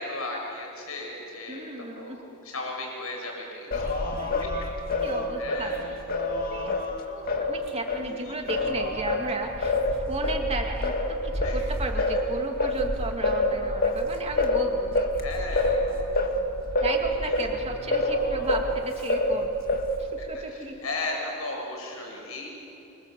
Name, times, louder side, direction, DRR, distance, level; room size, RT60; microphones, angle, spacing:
voice 1, 0.0-2.2 2.4-3.8 5.4-5.8 8.2-8.4 11.4-11.6 15.2-15.7 20.3-22.5, left 2 dB, 85° left, 0 dB, 7.1 m, -35 dB
voice 2, 1.5-2.2 4.2-4.5 5.0-5.8 6.4-6.7 7.1-15.1 16.8-19.5 20.0-20.8, right 2 dB, 30° right, 2 dB, 2.7 m, -35 dB
Singing, 3.7-8.1 8.5-18.8 19.1-20.1, left 1 dB, 45° left, 2.2 m, -27 dB
26.5 x 26.0 x 7.7 m, 2.9 s
head